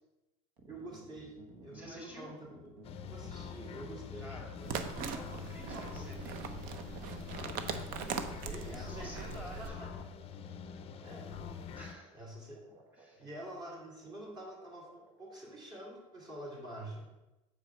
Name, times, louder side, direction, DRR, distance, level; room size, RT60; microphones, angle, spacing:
sound 1, 0.6-15.4, right 2 dB, 75° right, 1.5 m, -57 dB
voice 1, 0.7-1.3 1.6-2.5 3.1-4.3 4.6-4.8 5.7-5.9 8.4-9.9 11.0-11.3 12.1-12.8 13.2-17.1, right 1 dB, 25° right, -2 dB, 2.5 m, -47 dB
voice 2, 1.7-2.3 4.2-4.5 5.1-6.6 8.4-9.8 11.8-12.3 12.9-13.3, equal, 10° right, -2 dB, 2.5 m, -50 dB
sound 2, 2.8-11.9, left 6 dB, 35° left, 0.5 m, -45 dB
sound 3, 4.6-9.7, right 6 dB, 55° right, 0.7 m, -40 dB
6.9 x 4.8 x 4.5 m, 1.0 s
supercardioid pair, 110°, 17 cm